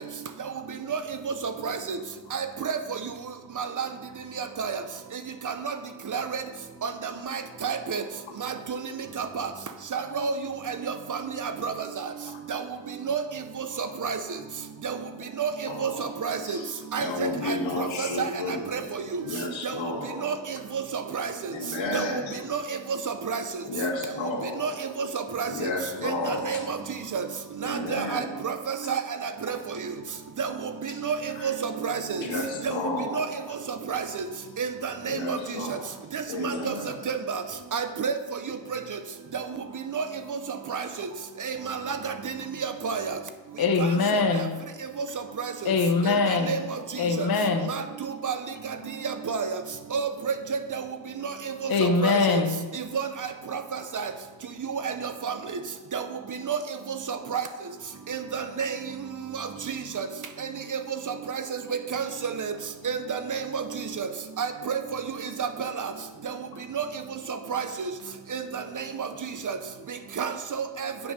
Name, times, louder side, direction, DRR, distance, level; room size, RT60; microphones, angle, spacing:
voice 1, 1.4-2.0 2.3-2.8 3.6-3.9 4.4-4.8 5.4-5.7 6.1-6.4 6.8-6.9 7.3-8.0 8.4-8.8 9.2-9.5 9.9-10.3 10.7-10.8 11.1-11.2 11.4-11.7 12.5-12.6 13.1-13.2 13.6-14.2 14.8-15.0 15.4-15.5 15.8-16.4 16.9-18.3 18.7-18.8 19.1-19.2 20.2-20.3 20.7-21.3 21.9-22.1 22.5-22.6 23.3-23.4 24.6-24.7 25.1-25.5 26.0-26.8 27.1-27.2 27.6-29.6 30.4-30.5 31.0-31.1 31.4-32.2 32.6-32.7 33.1-33.2 33.9-34.0 34.6-35.4 36.1-36.7 37.1-37.4 37.7-38.2 39.9-40.0 40.7-40.8 41.4-42.1 42.8-43.1 45.4-45.5 46.3-46.6 47.2-47.3 47.7-47.8 48.2-48.3 49.3-49.5 49.9-50.3 51.8-52.2 52.9-53.1 53.5-53.6 53.9-54.1 54.7-54.9 55.2-55.3 55.9-56.0 56.5-56.6 57.1-57.4 58.1-58.8 60.0-60.1 61.9-62.1 62.4-62.5 62.8-63.6 64.0-64.1 64.4-65.0 65.4-65.9 66.7-66.8 67.5-67.6 68.3-68.4 68.8-68.9 69.5-69.6 70.2-70.9, right 6 dB, 40° right, 9 dB, 0.8 m, -29 dB
voice 2, 15.7-18.9 19.2-20.4 21.5-22.6 23.6-25.0 25.4-26.8 27.6-28.5 28.8-28.9 29.5-29.6 31.1-31.6 32.1-33.6 35.0-36.0 36.3-37.0 39.7-39.8 40.8-40.9 41.8-42.1 42.4-42.5 45.5-45.6, left 2 dB, 75° left, 0 dB, 2.3 m, -33 dB
voice 3, 43.6-44.5 45.6-46.6 47.0-47.7 51.7-52.6, left 4 dB, 50° left, 3 dB, 1.0 m, -23 dB
9.4 x 6.0 x 6.6 m, 1.2 s
cardioid pair, 105°, 46 cm